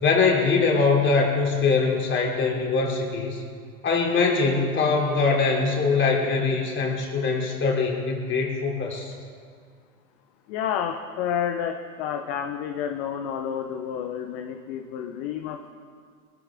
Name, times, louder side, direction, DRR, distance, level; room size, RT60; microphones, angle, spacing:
voice 1, 0.0-3.4 3.8-9.1, left 4 dB, 25° left, -1 dB, 3.3 m, -22 dB
voice 2, 10.5-15.7, left 8 dB, 45° left, 5 dB, 1.0 m, -30 dB
22.0 x 12.5 x 3.7 m, 2.1 s
hypercardioid pair, 100°, 45 cm